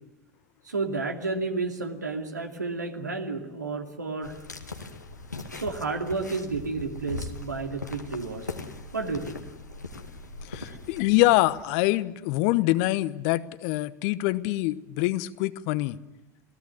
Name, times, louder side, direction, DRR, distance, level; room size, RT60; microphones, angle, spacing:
voice 1, 0.6-4.4 5.5-8.5 8.9-9.4 10.7-10.8, right 3 dB, 85° right, 4 dB, 2.5 m, -31 dB
sound 1, 4.2-11.6, left 3 dB, 90° left, 1.9 m, -40 dB
voice 2, 10.4-16.0, left 18 dB, 55° left, 16 dB, 1.0 m, -25 dB
28.0 x 17.5 x 9.7 m, 0.96 s
figure-of-eight pair, 75°, 9 cm